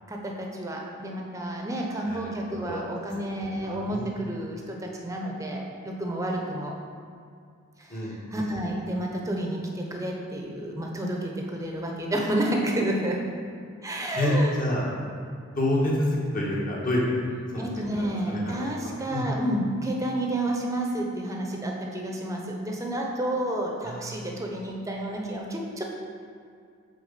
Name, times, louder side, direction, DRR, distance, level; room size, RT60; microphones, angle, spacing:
voice 1, 0.1-6.7 7.8-13.2 13.8-14.5 17.6-25.9, right 1 dB, 15° right, 0 dB, 0.8 m, -30 dB
voice 2, 2.0-2.9 3.4-4.1 7.9-8.6 14.1-14.9 15.6-17.2 17.5-19.3 23.8-24.1, left 1 dB, 40° left, -4 dB, 1.6 m, -28 dB
6.2 x 5.0 x 6.6 m, 2.2 s
head